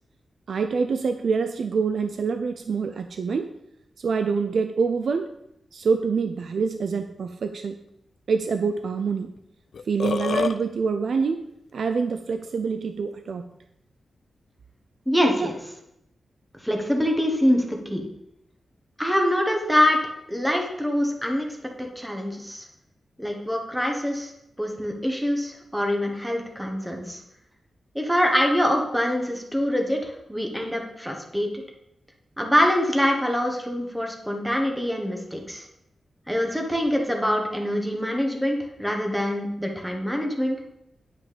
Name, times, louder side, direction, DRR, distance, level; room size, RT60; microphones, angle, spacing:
voice 1, 0.5-3.5 4.0-5.3 5.7-7.8 8.3-9.3 9.8-11.4 11.7-13.5 15.4-15.5, right 5 dB, 65° right, 7 dB, 0.6 m, -26 dB
Burping eructation, 9.4-9.5 9.7-10.6, left 5 dB, 65° left, 0.5 m, -26 dB
voice 2, 15.1-15.6 16.6-18.0 19.0-20.0 20.3-21.5 21.8-22.6 23.2-24.3 24.6-27.2 27.9-31.5 32.4-35.7 36.3-40.6, equal, ahead, 1 dB, 1.3 m, -24 dB
10.0 x 6.3 x 5.2 m, 0.80 s
wide cardioid pair, 160°, 0 cm